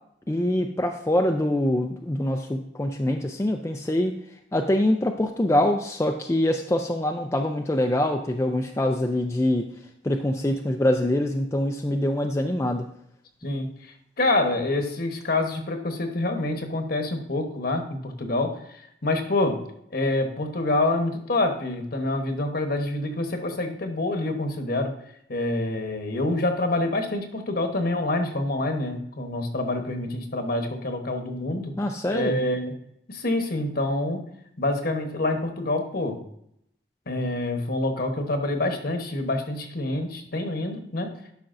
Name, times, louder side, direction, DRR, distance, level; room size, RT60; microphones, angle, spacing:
voice 1, 0.3-4.1 4.5-9.6 10.0-12.8 31.8-32.4, left 1 dB, 15° left, 3 dB, 0.4 m, -24 dB
voice 2, 13.4-18.6 19.0-19.6 19.9-24.9 25.3-31.7 32.1-32.8 33.1-34.2 34.6-36.2 37.1-41.1, left 2 dB, 55° left, 5 dB, 1.1 m, -26 dB
11.5 x 5.8 x 2.6 m, 0.73 s
head